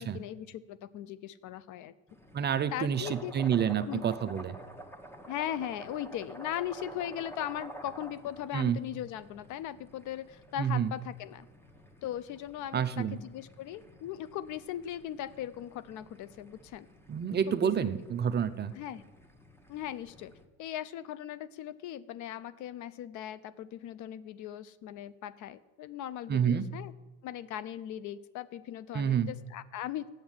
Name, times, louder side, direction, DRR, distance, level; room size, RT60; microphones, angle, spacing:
voice 1, 0.0-1.9 2.7-3.3 3.9-4.1 5.3-11.5 12.0-16.9 17.5-17.7 18.7-19.0 19.7-20.3 20.6-26.9 27.2-30.1, left 11 dB, 50° left, 16 dB, 0.5 m, -39 dB
sound 1, 2.1-20.5, right 1 dB, 5° left, 1.1 m, -50 dB
voice 2, 2.3-4.6 8.5-8.8 10.6-10.9 12.7-13.2 17.1-18.7 26.3-26.7 28.9-29.3, right 8 dB, 25° right, 11 dB, 0.5 m, -29 dB
7.7 x 7.2 x 7.2 m, 1.3 s
supercardioid pair, 95°, 40 cm